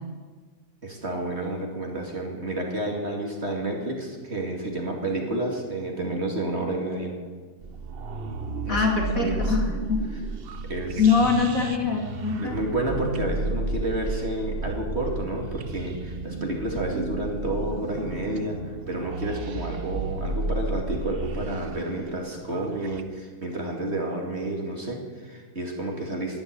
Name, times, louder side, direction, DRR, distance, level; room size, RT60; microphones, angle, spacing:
voice 1, 0.8-7.1 8.7-8.9 9.1-9.6 10.1-10.2 10.7-11.1 12.4-26.4, right 1 dB, 35° right, 0 dB, 2.6 m, -30 dB
sound 1, 7.6-23.0, right 2 dB, 50° right, 0.7 m, -32 dB
voice 2, 8.7-10.0 11.0-12.6, left 5 dB, 45° left, 0 dB, 3.1 m, -23 dB
12.5 x 11.5 x 9.9 m, 1.5 s
omnidirectional pair, 2.0 m